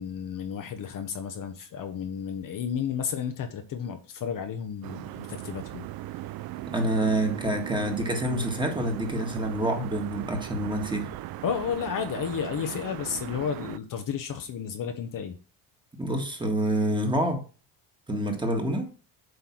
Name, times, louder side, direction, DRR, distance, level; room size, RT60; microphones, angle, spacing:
voice 1, 0.0-5.9 11.4-15.4, left 7 dB, 50° left, 7 dB, 1.0 m, -32 dB
sound 1, 4.8-13.8, right 15 dB, 55° right, 0.5 m, -38 dB
voice 2, 6.7-11.1 16.0-17.4 18.1-18.9, right 1 dB, 10° right, 2 dB, 1.9 m, -27 dB
7.9 x 3.4 x 6.0 m, 0.36 s
cardioid pair, 100°, 43 cm